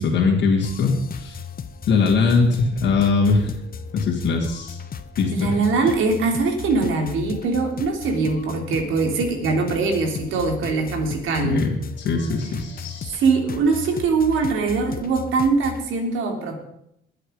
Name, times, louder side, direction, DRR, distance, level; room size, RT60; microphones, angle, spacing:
voice 1, 0.0-1.4 1.9-3.5 3.9-4.8 5.2-5.5 11.4-11.8 12.0-13.2, left 4 dB, 75° left, -3 dB, 2.7 m, -21 dB
sound 1, 0.6-15.9, left 7 dB, 50° left, 1.1 m, -36 dB
voice 2, 5.3-11.6 13.1-16.6, right 4 dB, 85° right, 2 dB, 3.2 m, -22 dB
21.5 x 7.9 x 5.1 m, 0.76 s
cardioid pair, 90°, 20 cm